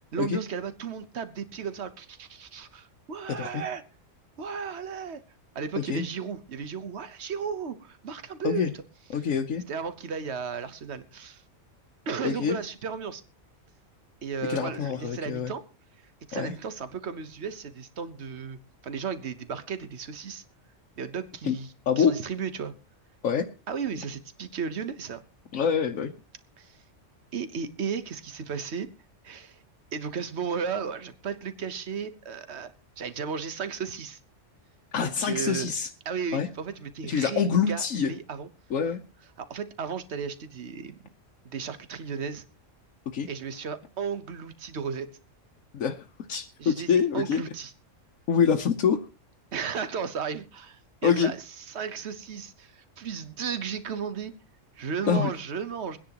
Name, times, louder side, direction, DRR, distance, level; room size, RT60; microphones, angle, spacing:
voice 1, 0.0-3.8 4.4-5.2 5.5-8.7 9.1-9.2 9.7-11.4 12.1-13.2 14.2-15.6 16.3-18.6 18.8-20.4 21.0-22.7 23.7-25.2 26.6-26.8 27.3-28.9 29.2-29.6 29.9-34.2 35.0-35.7 36.0-38.5 39.4-41.1 41.4-42.4 43.3-45.1 46.6-47.7 49.5-54.3 54.8-56.0, right 6 dB, 60° right, 1.3 m, -34 dB
voice 2, 9.1-9.6 12.2-12.6 14.5-15.5 16.3-16.5 21.4-21.5 21.9-22.1 23.2-23.4 25.5-26.1 34.9-35.9 36.3-36.5 37.0-38.1 38.7-39.0 43.1-43.3 45.7-46.0 46.3-47.4 48.3-49.0 51.0-51.3 55.1-55.3, left 7 dB, 90° left, 1.3 m, -25 dB
24.0 x 10.0 x 2.9 m
omnidirectional pair, 1.3 m